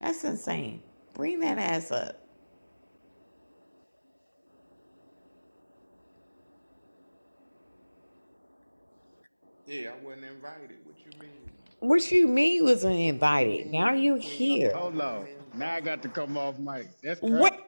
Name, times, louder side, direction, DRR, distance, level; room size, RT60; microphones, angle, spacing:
voice 1, 0.0-0.8 1.2-2.1 11.8-14.8 17.2-17.5, equal, 60° left, 0.6 m, -25 dB
voice 2, 9.7-11.8 13.0-16.0, right 1 dB, 25° right, 1.2 m, -44 dB
voice 3, 14.7-17.5, equal, 90° right, 0.7 m, -33 dB
20.0 x 18.5 x 3.7 m
figure-of-eight pair, 180°, 0 cm